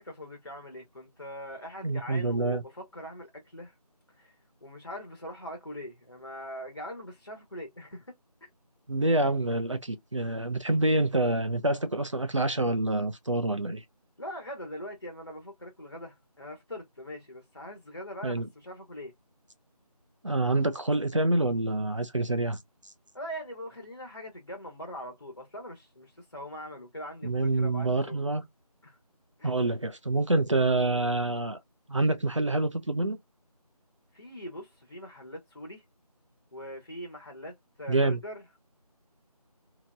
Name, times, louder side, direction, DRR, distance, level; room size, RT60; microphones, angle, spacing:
voice 1, 0.0-3.7 4.2-4.3 4.6-8.2 14.2-19.1 23.1-28.4 28.8-29.0 29.4-29.5 34.1-35.8 36.5-38.4, equal, 45° left, 0.8 m, -42 dB
voice 2, 1.8-2.6 8.9-13.8 18.2-18.5 20.2-22.6 27.2-28.4 29.4-31.6 31.9-33.2 37.9-38.2, right 2 dB, 50° right, 0.6 m, -27 dB
2.9 x 2.7 x 2.2 m
figure-of-eight pair, 180°, 20 cm